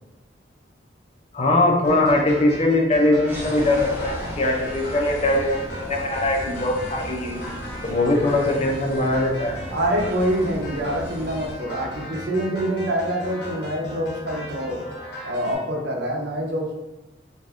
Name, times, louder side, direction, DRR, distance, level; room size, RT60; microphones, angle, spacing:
voice 1, 1.3-7.4 7.8-9.6, left 2 dB, 35° left, 0 dB, 0.5 m, -21 dB
sound 1, 1.8-15.6, equal, 70° left, 0.9 m, -37 dB
sound 2, 3.3-11.5, equal, 10° right, 0.6 m, -36 dB
voice 2, 9.7-14.8 15.2-16.7, equal, 65° right, 1 dB, 0.6 m, -25 dB
2.5 x 2.2 x 3.4 m, 1.0 s
head